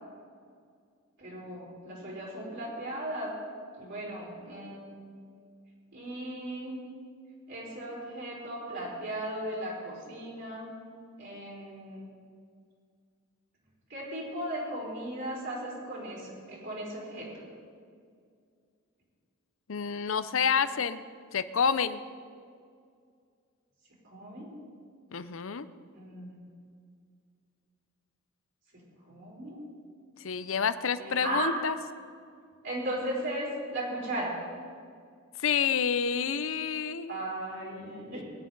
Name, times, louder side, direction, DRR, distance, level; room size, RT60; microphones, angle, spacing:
voice 1, 1.2-3.3 3.8-5.0 5.9-6.8 7.5-10.7 11.2-12.0 13.9-17.4 24.0-24.5 25.9-26.3 28.7-29.6 31.0-31.6 32.6-34.4 37.1-38.2, right 1 dB, 60° right, -5 dB, 4.6 m, -36 dB
voice 2, 19.7-21.0 21.3-22.0 25.1-25.7 30.2-31.8 35.4-37.2, left 6 dB, 70° left, 13 dB, 0.6 m, -28 dB
21.5 x 11.0 x 4.0 m, 2.2 s
head